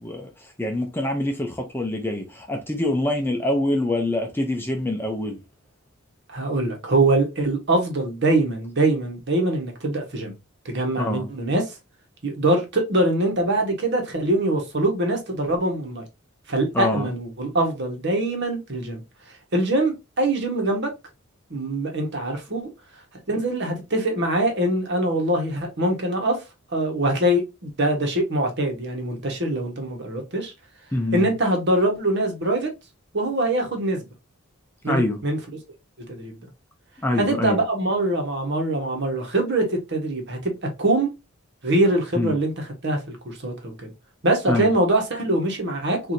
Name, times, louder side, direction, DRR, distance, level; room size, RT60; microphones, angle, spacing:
voice 1, 0.0-5.4 11.0-11.3 16.7-17.1 30.9-31.3 34.9-35.2 37.0-37.6 42.1-42.3 44.5-44.7, left 1 dB, 10° left, 0.6 m, -25 dB
voice 2, 6.3-10.3 10.6-11.6 12.2-16.0 16.5-19.0 19.5-20.9 21.5-22.7 23.3-26.4 26.7-30.5 31.1-32.7 33.1-34.0 34.8-35.4 36.1-36.4 37.2-40.5 40.8-41.1 41.6-43.9 44.2-46.1, right 1 dB, 55° right, 1.4 m, -23 dB
4.7 x 2.7 x 2.7 m
head